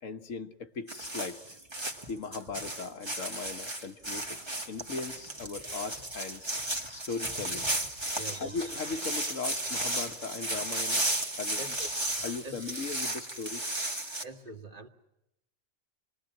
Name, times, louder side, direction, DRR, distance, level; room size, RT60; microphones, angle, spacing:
voice 1, 0.0-1.6 2.1-4.4 4.7-6.4 6.7-7.7 8.3-11.1 11.4-11.9 12.2-13.8, left 4 dB, 90° left, 1.6 m, -38 dB
sound 1, 0.9-14.2, right 1 dB, 20° right, 1.8 m, -34 dB
voice 2, 8.1-8.6 11.6-11.8 12.4-12.6 14.2-14.9, right 2 dB, 40° right, 2.1 m, -43 dB
28.0 x 21.0 x 7.4 m
omnidirectional pair, 1.3 m